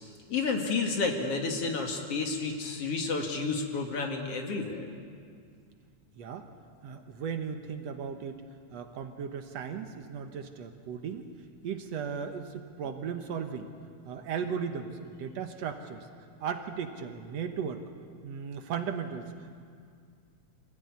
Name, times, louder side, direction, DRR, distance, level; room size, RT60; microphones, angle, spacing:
voice 1, 0.3-4.9, left 4 dB, 55° left, 2 dB, 2.9 m, -31 dB
voice 2, 6.8-8.4 8.7-11.3 11.6-13.7 14.1-16.0 16.4-17.8 18.2-19.3, right 7 dB, 65° right, 6 dB, 2.2 m, -36 dB
25.0 x 16.0 x 9.7 m, 2.2 s
omnidirectional pair, 3.4 m